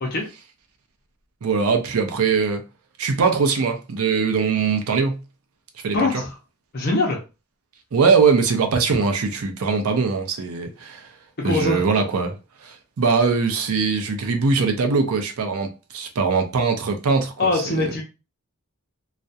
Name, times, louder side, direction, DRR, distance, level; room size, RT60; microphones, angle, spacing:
voice 1, 1.4-2.6 3.0-5.2 5.8-6.2 7.9-11.1 11.4-12.4 12.6-17.9, right 5 dB, 90° right, 0.5 m, -21 dB
voice 2, 5.9-6.3 6.7-7.2 11.4-11.8 17.4-18.0, left 2 dB, 45° left, 0.5 m, -22 dB
2.3 x 2.1 x 2.6 m
head